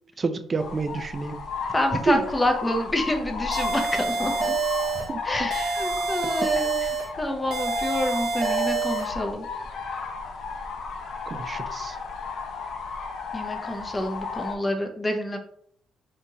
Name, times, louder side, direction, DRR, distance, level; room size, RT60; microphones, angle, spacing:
voice 1, 0.2-1.4 2.1-2.2 4.9-5.5 6.2-6.3 11.3-12.0, right 4 dB, 35° right, 10 dB, 0.3 m, -29 dB
sound 1, 0.6-14.6, left 5 dB, 65° left, 0.5 m, -34 dB
voice 2, 1.7-4.5 5.2-6.7 7.2-9.5 13.3-15.4, left 1 dB, 15° left, 4 dB, 0.6 m, -27 dB
sound 2, 3.5-5.1 5.5-7.1 7.5-9.1, right 4 dB, 75° right, 0.8 m, -27 dB
3.4 x 2.9 x 2.7 m, 0.68 s
cardioid pair, 90°, 0 cm